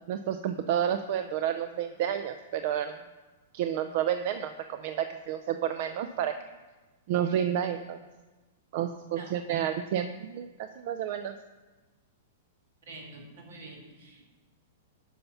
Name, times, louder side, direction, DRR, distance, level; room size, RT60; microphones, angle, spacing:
voice 1, 0.1-3.0 3.5-6.3 7.1-8.0 8.7-11.3, right 9 dB, 45° right, 9 dB, 0.4 m, -30 dB
voice 2, 12.9-14.2, right 2 dB, 70° right, 1 dB, 2.3 m, -46 dB
9.8 x 5.6 x 5.5 m, 1.2 s
supercardioid pair, 165°, 0 cm